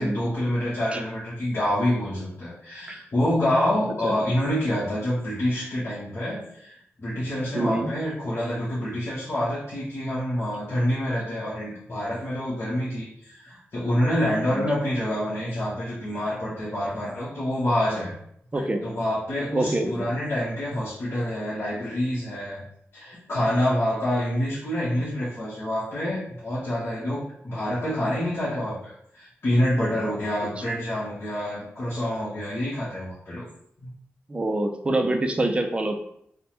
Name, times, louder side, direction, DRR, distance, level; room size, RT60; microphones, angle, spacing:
voice 1, 0.0-18.1 18.5-22.6 22.9-33.4 33.8-33.9, left 1 dB, 50° left, -10 dB, 0.9 m, -27 dB
voice 2, 7.5-7.9 14.5-14.7 18.5-18.8 19.5-20.1 34.3-36.0, right 2 dB, 25° right, 5 dB, 0.4 m, -26 dB
3.3 x 2.1 x 2.8 m, 0.71 s
wide cardioid pair, 85°, 5 cm